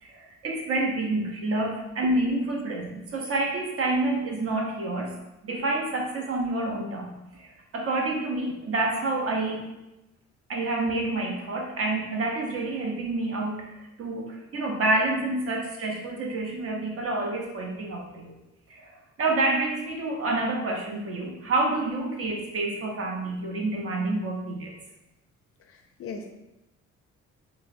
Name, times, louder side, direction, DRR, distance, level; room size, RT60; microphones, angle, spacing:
voice 1, 0.0-5.1 5.4-9.7 10.5-18.3 18.7-24.7, right 2 dB, 50° right, 0 dB, 0.6 m, -28 dB
voice 2, 25.7-26.3, left 4 dB, 50° left, 4 dB, 0.4 m, -39 dB
3.3 x 2.0 x 2.5 m, 0.97 s
cardioid pair, 90°, 30 cm